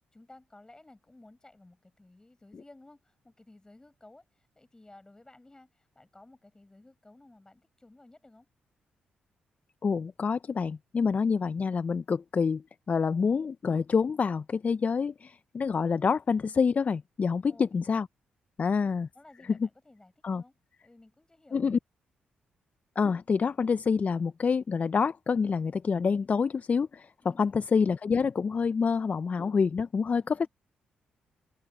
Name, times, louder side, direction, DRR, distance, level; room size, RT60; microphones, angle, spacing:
voice 1, 0.1-4.2 4.6-8.5 17.5-17.7 18.7-21.7 27.2-27.4 30.1-30.5, left 2 dB, 20° left, 7.8 m, -56 dB
voice 2, 9.8-12.6 12.9-18.1 18.6-19.1 19.4-19.7 20.2-20.4 21.5-21.8 23.0-27.1 27.4-30.5, left 5 dB, 45° left, 0.5 m, -27 dB
open air
supercardioid pair, 50°, 4 cm